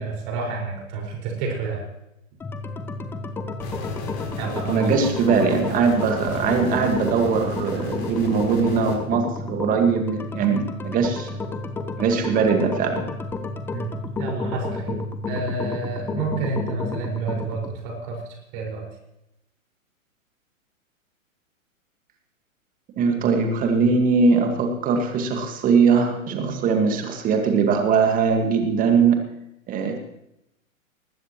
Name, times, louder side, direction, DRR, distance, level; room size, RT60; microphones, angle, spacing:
voice 1, 0.0-1.8 4.4-4.9 13.7-13.9 14.2-15.0 15.3-18.9, right 4 dB, 35° right, 0 dB, 5.3 m, -29 dB
sound 1, 2.4-17.8, left 3 dB, 5° left, 0.6 m, -31 dB
sound 2, 3.6-8.9, left 3 dB, 40° left, 4.2 m, -35 dB
voice 2, 4.7-11.4 12.0-13.1 23.0-29.3 29.7-30.0, right 5 dB, 20° right, 5 dB, 1.8 m, -21 dB
20.0 x 15.0 x 3.1 m, 0.85 s
figure-of-eight pair, 115°, 41 cm